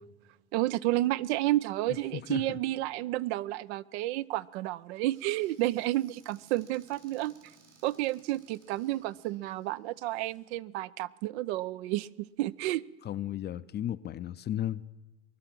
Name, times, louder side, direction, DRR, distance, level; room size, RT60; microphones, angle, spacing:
voice 1, 0.5-7.3 7.8-12.8, right 16 dB, 65° right, 0.6 m, -31 dB
voice 2, 1.9-2.6 13.0-14.8, left 11 dB, 30° left, 0.5 m, -35 dB
Squeak / Cupboard open or close, 5.1-10.4, right 4 dB, 85° right, 6.4 m, -62 dB
21.0 x 11.5 x 6.0 m
hypercardioid pair, 85°, 35 cm